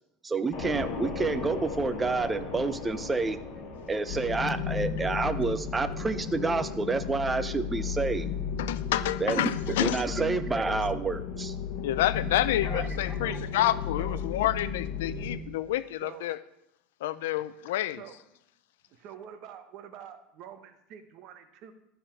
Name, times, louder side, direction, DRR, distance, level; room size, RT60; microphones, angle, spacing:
voice 1, 0.2-3.4 3.9-8.4 9.2-11.5 12.6-12.9, right 3 dB, 15° right, 11 dB, 0.6 m, -29 dB
sound 1, 0.5-12.5, left 5 dB, 45° left, 2.4 m, -41 dB
sound 2, 4.1-15.4, left 6 dB, 70° left, 1.2 m, -34 dB
voice 2, 8.6-10.0 11.8-16.4 17.0-18.0, left 13 dB, 85° left, 15 dB, 0.5 m, -29 dB
voice 3, 12.6-14.3 16.0-16.3 18.0-18.2 18.9-21.7, right 9 dB, 55° right, 8 dB, 1.1 m, -46 dB
12.5 x 5.6 x 4.5 m, 0.84 s
supercardioid pair, 135°, 0 cm